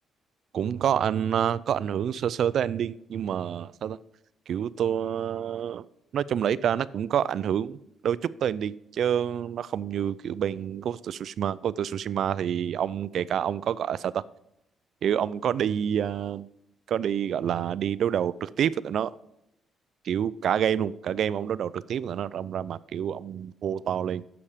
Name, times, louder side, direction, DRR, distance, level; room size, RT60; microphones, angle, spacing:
voice 1, 0.5-4.0 4.5-5.8 6.1-14.2 15.0-16.5 16.9-19.1 20.0-24.2, right 9 dB, 65° right, 19 dB, 0.4 m, -28 dB
8.5 x 6.7 x 4.9 m, 0.81 s
cardioid pair, 90°, 0 cm